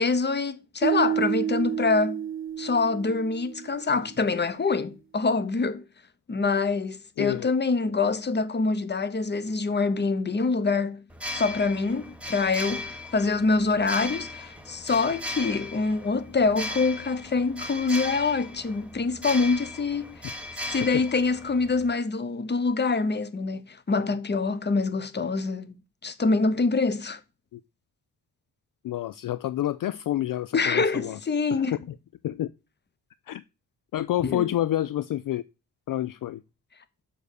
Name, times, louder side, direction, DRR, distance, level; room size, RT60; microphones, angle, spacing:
voice 1, 0.0-2.2 2.6-5.8 6.3-11.0 11.3-20.2 20.7-25.7 26.0-27.2 30.5-31.8 34.2-34.5, left 4 dB, 25° left, 0.9 m, -25 dB
sound 1, 0.8-4.0, right 9 dB, 35° right, 0.4 m, -29 dB
voice 2, 7.2-7.5 20.9-21.0 27.5-27.6 28.8-31.2 31.5-31.7 32.2-32.5 33.3-33.4 33.9-35.4 35.9-36.4, left 13 dB, 60° left, 0.5 m, -28 dB
sound 2, 11.1-21.9, left 1 dB, 5° right, 1.3 m, -37 dB
6.8 x 5.3 x 6.5 m
cardioid pair, 100°, 38 cm